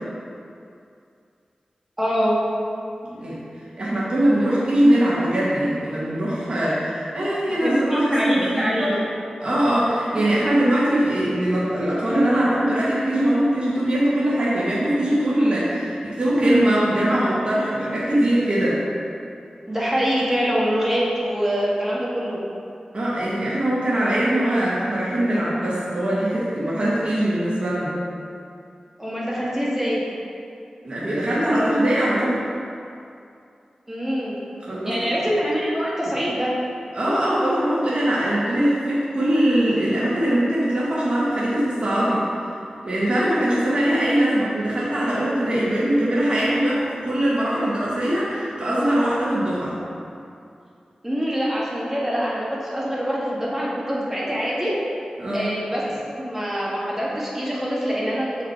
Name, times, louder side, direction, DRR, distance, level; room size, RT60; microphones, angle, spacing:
voice 1, 2.0-2.4 7.5-9.0 19.7-22.4 29.0-30.0 33.9-34.3 34.9-36.5 43.2-43.3 51.0-54.7 55.3-58.3, equal, 15° right, -6 dB, 1.8 m, -24 dB
voice 2, 3.0-3.4 3.8-9.0 9.4-18.8 22.9-27.9 30.8-32.4 34.7-35.0 36.9-42.2 42.8-49.8 55.2-55.5, right 1 dB, 50° right, -9 dB, 1.9 m, -21 dB
6.6 x 6.1 x 4.5 m, 2.5 s
wide cardioid pair, 95°, 2 cm